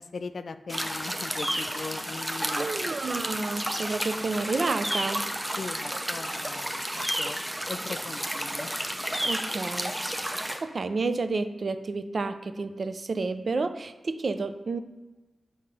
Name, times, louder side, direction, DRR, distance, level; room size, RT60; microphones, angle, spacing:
voice 1, 0.0-2.9 5.6-8.8 9.1-9.3, left 4 dB, 70° left, 11 dB, 0.3 m, -40 dB
sound 1, 0.7-10.6, equal, 10° right, 0.6 m, -31 dB
voice 2, 2.5-5.3 9.2-14.8, right 3 dB, 60° right, 10 dB, 0.4 m, -30 dB
6.4 x 2.8 x 5.4 m, 1.1 s
cardioid pair, 55°, 0 cm